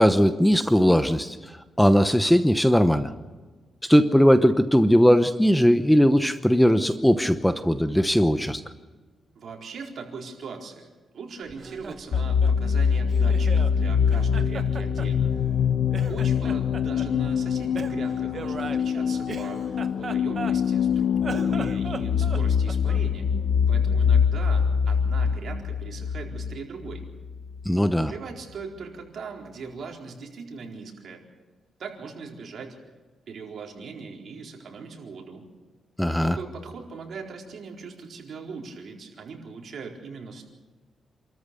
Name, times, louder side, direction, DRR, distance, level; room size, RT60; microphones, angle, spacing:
voice 1, 0.0-1.4 1.8-3.1 3.9-8.6 27.7-28.1 36.0-36.4, equal, 5° left, 10 dB, 0.9 m, -19 dB
voice 2, 9.3-10.9 11.1-15.3 16.1-23.3 23.7-27.0 28.1-31.2 31.8-32.8 33.3-35.5 36.2-40.5, right 5 dB, 65° right, 1 dB, 4.4 m, -40 dB
Laughter, 11.5-13.8 14.1-15.6 15.9-17.1 17.7-20.8 21.2-23.1, right 5 dB, 45° right, 1.2 m, -38 dB
sound 1, 12.1-27.7, left 7 dB, 70° left, 0.8 m, -24 dB
28.5 x 13.5 x 7.0 m, 1.3 s
cardioid pair, 110°, 0 cm